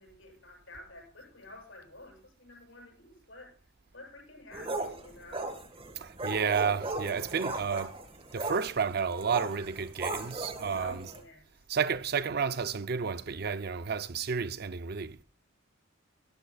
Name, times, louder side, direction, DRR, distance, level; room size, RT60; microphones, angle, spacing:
voice 1, 0.0-3.5 3.9-5.5 10.8-11.5, left 2 dB, 65° left, 7.7 m, -50 dB
sound 1, 4.5-11.2, right 2 dB, 25° right, 1.5 m, -37 dB
voice 2, 6.0-8.0 8.3-11.1 11.7-15.2, right 6 dB, 50° right, 0.5 m, -31 dB
20.5 x 13.5 x 2.3 m
head